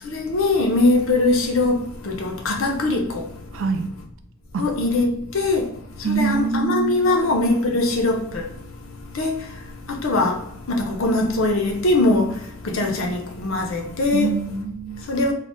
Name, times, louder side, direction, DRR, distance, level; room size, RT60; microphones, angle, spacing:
voice 1, 0.0-3.3 4.6-5.7 6.1-8.5 9.1-9.4 9.9-10.4 10.7-12.4 12.6-14.3 15.1-15.3, left 2 dB, 85° left, 0.6 m, -21 dB
voice 2, 3.5-3.9 4.5-4.6 6.0-7.2 14.1-15.0, right 6 dB, 75° right, 0.4 m, -25 dB
2.3 x 2.0 x 3.6 m
head